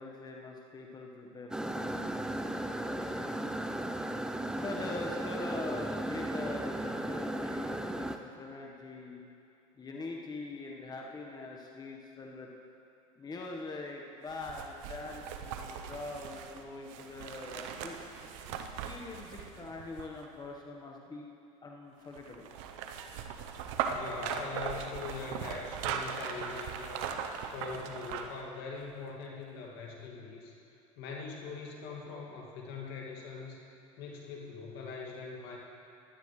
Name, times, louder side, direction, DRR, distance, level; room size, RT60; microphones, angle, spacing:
voice 1, 0.0-3.8 4.6-9.2 9.7-12.5 13.2-18.0 18.6-21.3 21.6-22.5, left 2 dB, 25° left, 0 dB, 1.3 m, -43 dB
sound 1, 1.5-8.2, right 1 dB, 5° right, 0.6 m, -36 dB
Moving garbage, 14.3-20.5 22.1-28.4 28.8-28.9, right 7 dB, 75° right, 0.8 m, -39 dB
voice 2, 23.9-27.1 27.5-30.5 31.0-33.6 34.0-35.6, left 4 dB, 65° left, -1 dB, 2.2 m, -42 dB
16.5 x 11.5 x 3.2 m, 2.6 s
hypercardioid pair, 85°, 17 cm